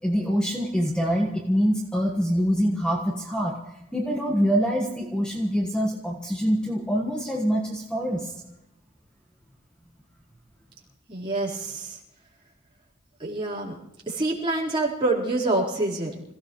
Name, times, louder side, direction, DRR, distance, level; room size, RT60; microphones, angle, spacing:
voice 1, 0.0-3.6 3.9-8.3, equal, 5° left, -1 dB, 1.4 m, -25 dB
voice 2, 11.1-12.0 13.2-13.8 14.1-16.2, right 2 dB, 25° right, -6 dB, 4.2 m, -26 dB
27.0 x 16.5 x 3.2 m, 0.85 s
head